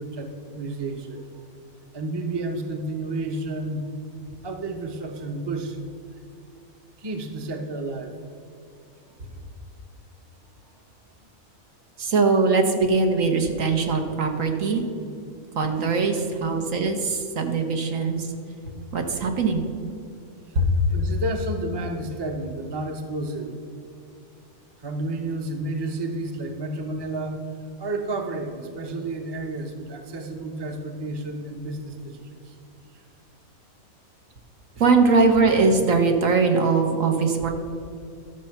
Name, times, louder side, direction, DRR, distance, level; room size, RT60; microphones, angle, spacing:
voice 1, 0.0-1.4 1.9-3.8 4.4-5.8 7.0-8.1 15.0-15.1 20.5-23.6 24.8-27.4 27.8-32.2 32.4-32.5 32.9-33.0, right 2 dB, 20° right, 4 dB, 0.8 m, -31 dB
voice 2, 12.0-14.8 15.5-18.3 18.9-19.7 20.5-20.7 34.8-37.5, right 4 dB, 70° right, 4 dB, 1.5 m, -21 dB
12.0 x 6.8 x 5.8 m, 2.6 s
omnidirectional pair, 1.4 m